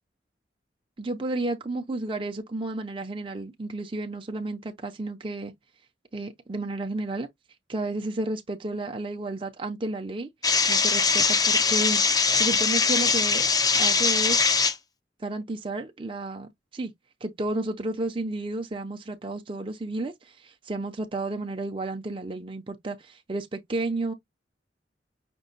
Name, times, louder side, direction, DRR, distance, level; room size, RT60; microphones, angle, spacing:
voice 1, 1.0-5.5 6.1-7.3 7.7-10.3 10.7-13.5 13.8-14.5 15.2-16.9 17.2-24.1, right 2 dB, 30° right, 0.6 m, -32 dB
sound 1, 10.4-14.7, left 5 dB, 20° left, 0.5 m, -22 dB
5.2 x 2.2 x 3.9 m
head